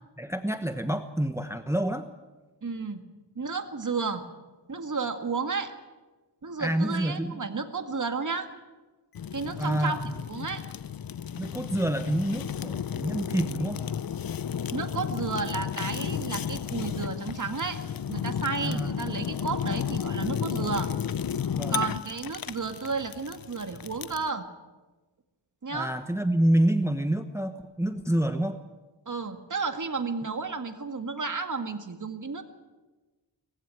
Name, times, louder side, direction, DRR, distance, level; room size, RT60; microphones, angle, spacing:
voice 1, 0.2-2.1 6.6-7.4 9.6-10.1 11.4-13.8 18.6-18.9 21.5-21.8 25.7-28.6, right 1 dB, 5° right, 8 dB, 1.0 m, -27 dB
voice 2, 2.6-3.1 3.4-4.2 4.7-5.7 6.4-8.5 9.3-10.0 10.3-10.6 14.7-17.8 18.1-20.9 21.7-24.5 25.6-25.9 29.1-32.4, right 4 dB, 45° right, 7 dB, 2.0 m, -32 dB
Fire, 9.1-24.3, left 8 dB, 55° left, 0.7 m, -33 dB
21.0 x 15.0 x 9.2 m, 1.2 s
wide cardioid pair, 80°, 43 cm